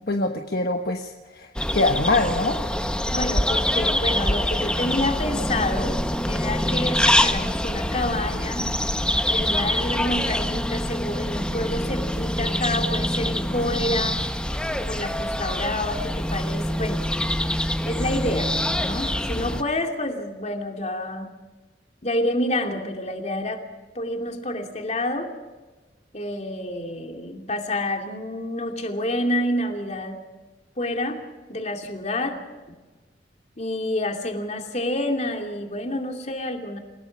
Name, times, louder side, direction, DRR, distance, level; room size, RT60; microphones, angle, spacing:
voice 1, 0.0-2.6, left 2 dB, 60° left, 4 dB, 1.3 m, -24 dB
sound 1, 1.6-19.6, left 1 dB, 5° left, 1.0 m, -25 dB
voice 2, 3.1-6.0 6.3-8.7 9.3-14.3 14.9-17.0 17.8-18.5 18.8-21.3 22.0-23.7 23.9-25.3 26.1-30.2 30.8-31.2 31.5-32.4 33.6-36.8, left 1 dB, 40° left, 3 dB, 2.8 m, -28 dB
28.5 x 17.0 x 5.4 m, 1.3 s
head